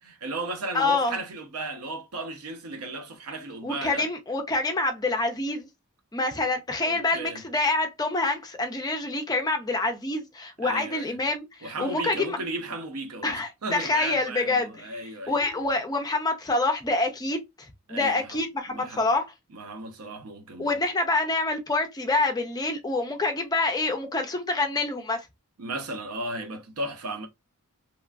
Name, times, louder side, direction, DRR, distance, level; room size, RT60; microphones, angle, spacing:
voice 1, 0.0-4.1 6.8-7.4 10.6-11.2 11.6-15.4 17.9-18.4 18.7-19.1 19.5-20.8 25.6-27.3, right 2 dB, 80° right, 0.6 m, -35 dB
voice 2, 0.7-1.2 3.6-5.7 6.1-12.4 13.2-14.7 15.3-17.4 17.9-19.3 20.6-25.2, left 2 dB, 15° left, 0.4 m, -26 dB
2.9 x 2.4 x 2.2 m
head